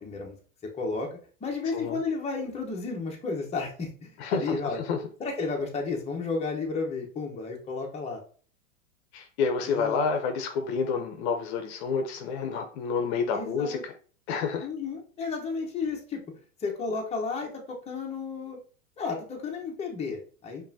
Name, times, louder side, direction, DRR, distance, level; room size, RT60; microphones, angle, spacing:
voice 1, 0.0-0.4 0.8-1.1 1.4-4.8 5.2-8.2 9.6-10.0 13.3-13.8 14.6-16.2 16.6-18.6 19.0-20.7, left 4 dB, 15° left, -1 dB, 1.0 m, -32 dB
voice 2, 4.2-5.0 9.1-13.9 14.3-14.7, left 5 dB, 55° left, 5 dB, 0.7 m, -29 dB
5.1 x 2.7 x 2.7 m, 0.42 s
hypercardioid pair, 120°, 39 cm